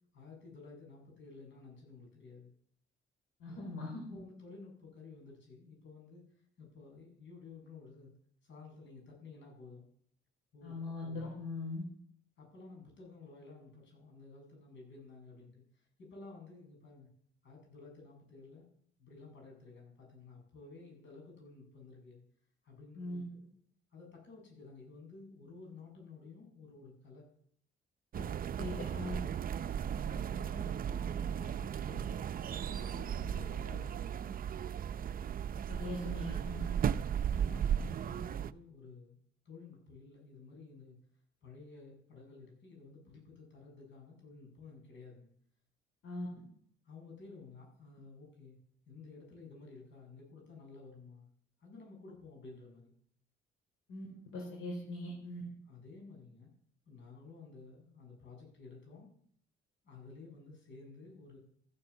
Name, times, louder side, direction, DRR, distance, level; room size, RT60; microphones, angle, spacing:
voice 1, 0.1-2.5 3.4-3.8 4.1-8.1 8.4-9.9 10.5-11.4 12.4-17.1 17.4-18.7 19.0-22.2 22.6-23.5 23.9-27.3 29.7-32.3 32.7-34.2 37.0-39.2 39.4-41.0 41.4-45.3 46.8-48.6 48.9-51.3 51.6-52.9 55.7-56.5 56.9-59.1 59.8-61.4, left 4 dB, 70° left, 1 dB, 7.9 m, -53 dB
voice 2, 3.4-4.2 10.6-11.8 22.9-23.2 28.1-28.2 28.6-29.2 35.7-36.7 46.0-46.3 53.9-54.1 54.3-55.4, left 2 dB, 90° left, -1 dB, 3.9 m, -41 dB
sound 1, 28.1-38.5, right 8 dB, 45° right, 0.6 m, -36 dB
14.0 x 9.9 x 7.1 m, 0.62 s
cardioid pair, 90°, 20 cm